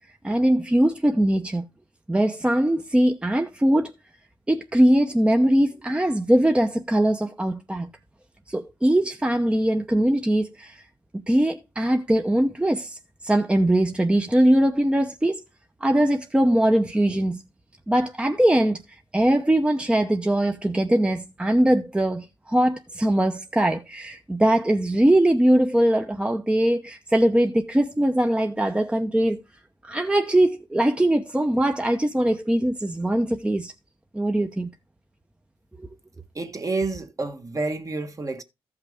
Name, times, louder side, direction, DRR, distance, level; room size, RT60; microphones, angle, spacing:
voice 1, 0.2-1.6 2.1-3.9 4.5-7.9 8.5-10.8 11.3-13.0 13.2-15.4 15.8-17.4 17.9-18.8 19.1-29.4 29.8-33.7 34.1-34.7 35.8-35.9, right 1 dB, 10° right, 0.8 m, -21 dB
voice 2, 36.3-38.4, right 3 dB, 35° right, 1.3 m, -29 dB
14.0 x 5.8 x 3.5 m
cardioid pair, 80°, 10 cm